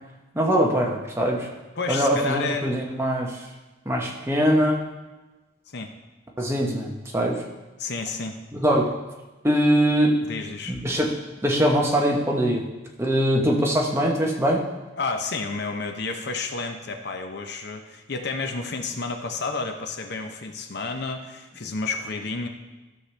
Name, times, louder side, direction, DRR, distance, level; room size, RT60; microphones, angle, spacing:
voice 1, 0.3-1.5 1.9-3.4 3.9-4.8 6.4-7.4 8.5-8.9 9.4-10.2 10.7-11.1 11.4-12.7 13.0-14.6, equal, 15° right, -1 dB, 1.0 m, -22 dB
voice 2, 1.8-2.8 5.7-5.9 7.8-8.3 10.3-10.8 15.0-22.5, left 4 dB, 55° left, 5 dB, 0.7 m, -31 dB
13.0 x 6.6 x 3.3 m, 1.1 s
head